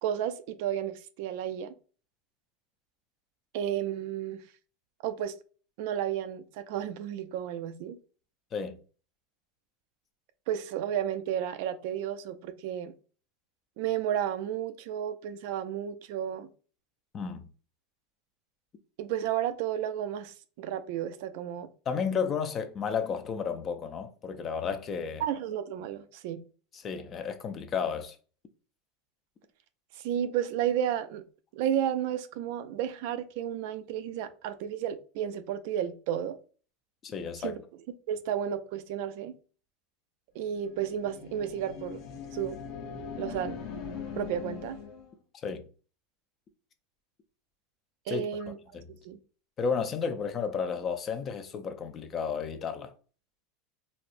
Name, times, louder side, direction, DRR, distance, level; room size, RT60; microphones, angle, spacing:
voice 1, 0.0-1.7 3.5-4.4 5.0-5.3 5.8-8.0 10.5-12.9 13.8-16.5 19.0-21.7 25.2-26.4 30.0-31.2 31.5-36.4 37.4-37.6 38.1-39.3 40.3-42.0 42.3-42.6 43.2-43.6 44.2-44.8 48.1-48.6 48.9-49.2, right 10 dB, 65° right, 0.4 m, -32 dB
voice 2, 17.1-17.5 21.9-25.2 26.7-28.2 37.0-37.6 45.4-45.6 48.1-48.3 48.7-48.9 49.6-52.9, left 6 dB, 30° left, 0.4 m, -32 dB
sound 1, 40.5-45.2, left 6 dB, 60° left, 0.7 m, -41 dB
4.2 x 2.0 x 2.5 m
supercardioid pair, 145°, 0 cm